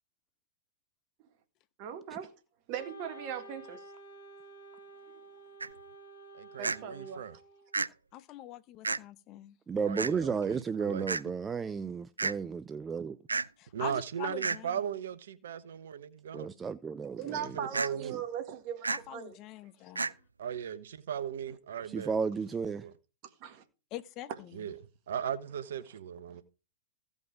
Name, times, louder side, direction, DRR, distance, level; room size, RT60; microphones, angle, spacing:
voice 1, 1.8-2.3 2.7-3.8 5.1-5.2 6.6-7.3 17.2-19.4 23.4-23.6, right 8 dB, 45° right, 1.9 m, -39 dB
Wind instrument woodwind instrument, 2.8-7.9, right 2 dB, 70° left, 1.9 m, -51 dB
sound 1, 5.6-5.7 6.6-6.8 7.7-7.9 8.8-9.0 10.0-10.1 11.1-11.2 12.2-12.3 13.3-13.5 14.4-14.6 17.7-17.9 18.8-19.0 20.0-20.1, right 4 dB, 90° right, 0.4 m, -30 dB
voice 2, 6.3-7.3 9.8-11.1 13.7-16.5 17.4-18.1 20.4-22.1 22.6-22.9 24.5-24.8 25.1-26.4, right 9 dB, 65° right, 1.0 m, -37 dB
voice 3, 8.1-9.6 13.6-14.8 18.9-20.1 23.9-24.3, left 14 dB, 35° left, 0.8 m, -44 dB
voice 4, 9.7-13.2 16.3-17.6 21.9-22.9, right 5 dB, 15° right, 0.4 m, -33 dB
15.5 x 5.4 x 4.8 m
hypercardioid pair, 110°, 0 cm